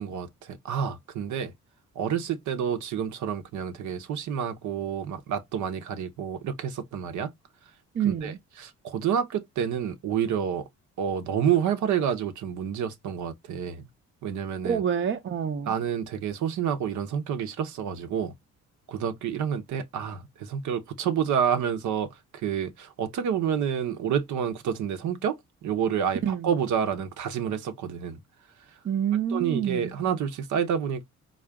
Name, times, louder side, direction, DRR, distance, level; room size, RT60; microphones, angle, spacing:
voice 1, 0.0-1.5 2.0-7.3 8.0-10.6 11.0-13.9 14.2-14.8 15.7-18.3 18.9-22.1 22.4-25.4 25.6-28.2 29.3-31.1, right 8 dB, 75° right, 0.8 m, -29 dB
voice 2, 8.0-8.4 14.6-15.7 26.2-26.5 28.8-29.9, right 8 dB, 40° right, 0.6 m, -27 dB
3.7 x 2.4 x 3.4 m
cardioid pair, 90°, 30 cm